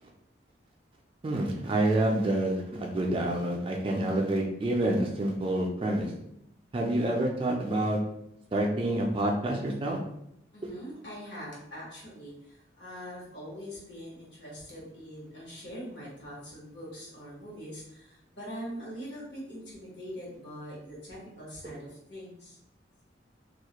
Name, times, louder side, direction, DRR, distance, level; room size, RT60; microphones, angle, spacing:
voice 1, 1.2-6.1 6.7-8.0 8.5-10.0, right 1 dB, 30° right, 0 dB, 0.3 m, -28 dB
voice 2, 10.5-22.6, equal, 70° left, -5 dB, 1.0 m, -43 dB
2.3 x 2.0 x 2.8 m, 0.78 s
head